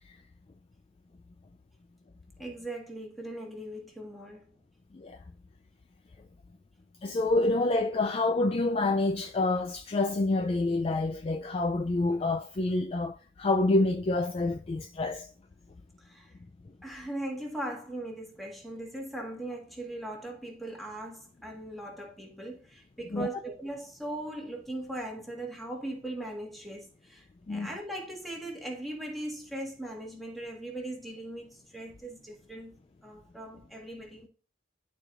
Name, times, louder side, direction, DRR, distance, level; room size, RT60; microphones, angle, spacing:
voice 1, 2.4-4.4 8.7-8.8 16.0-16.3 16.8-32.7 33.0-34.3, right 1 dB, ahead, 1.5 m, -39 dB
voice 2, 7.0-15.3 23.1-23.3 27.5-27.7, left 2 dB, 30° left, 0.3 m, -27 dB
11.5 x 4.5 x 2.4 m
head